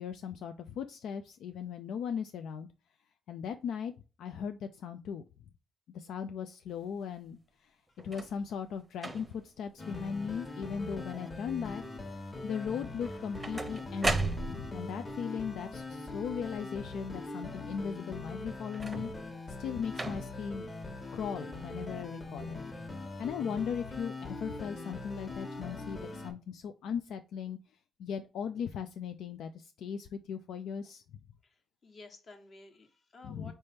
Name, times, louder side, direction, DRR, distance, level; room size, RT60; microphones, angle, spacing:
voice 1, 0.0-2.7 3.3-3.9 4.2-5.2 5.9-7.7 8.0-11.8 12.4-19.1 19.6-20.7 21.1-22.6 23.2-27.6 28.0-31.0 33.2-33.5, left 7 dB, 75° left, 0.3 m, -38 dB
sound 1, 8.0-8.4 9.0-9.5 10.1-10.5 10.7-11.3 13.0-14.9 18.7-19.3 19.9-20.5 21.3-21.4, right 3 dB, 20° right, 0.7 m, -36 dB
sound 2, 9.8-26.3, left 2 dB, 30° left, 1.2 m, -42 dB
voice 2, 31.8-33.5, left 3 dB, 45° left, 1.2 m, -53 dB
4.3 x 3.3 x 2.7 m
cardioid pair, 90°, 0 cm